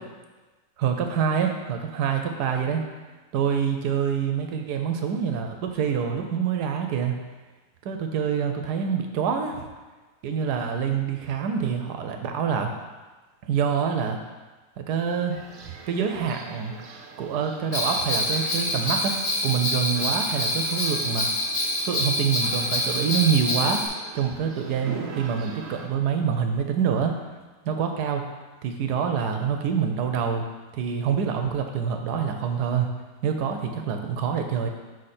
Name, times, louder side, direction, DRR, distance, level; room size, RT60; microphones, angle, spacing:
voice 1, 0.8-2.8 3.3-7.2 7.8-9.7 10.2-12.7 13.4-14.2 14.8-15.3 15.6-16.7 17.2-21.3 21.8-23.8 24.1-27.1 27.6-28.2 28.6-30.5 30.8-32.9 33.2-34.7, right 7 dB, 75° right, 4 dB, 1.2 m, -26 dB
sound 1, 15.3-25.9, right 4 dB, 60° right, 0.7 m, -42 dB
Bell, 17.7-23.9, left 1 dB, 40° left, 0.8 m, -26 dB
6.4 x 4.4 x 4.2 m, 1.3 s
omnidirectional pair, 1.8 m